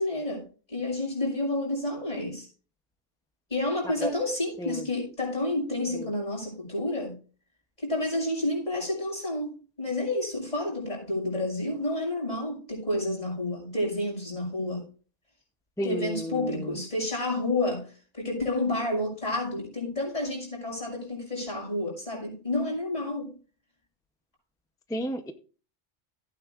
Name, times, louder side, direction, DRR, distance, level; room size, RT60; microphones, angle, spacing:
voice 1, 0.0-2.5 3.5-7.1 7.8-14.8 15.8-23.3, left 2 dB, 35° left, -3 dB, 6.2 m, -30 dB
voice 2, 15.8-16.7 24.9-25.3, equal, 5° left, 8 dB, 0.4 m, -32 dB
16.0 x 9.2 x 2.4 m, 0.38 s
omnidirectional pair, 1.2 m